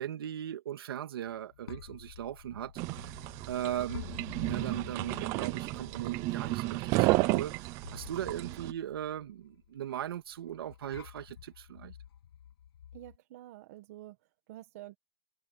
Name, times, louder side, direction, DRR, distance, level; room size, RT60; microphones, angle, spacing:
voice 1, 0.0-2.7 3.0-3.1 3.5-4.2 4.4-11.9, right 11 dB, 65° right, 2.7 m, -38 dB
sound 1, 1.3-13.2, left 9 dB, 80° left, 7.0 m, -50 dB
sound 2, 2.8-8.7, right 21 dB, 20° right, 0.6 m, -32 dB
voice 2, 12.9-14.2 14.5-15.0, right 15 dB, 40° right, 1.5 m, -48 dB
supercardioid pair, 175°, 13 cm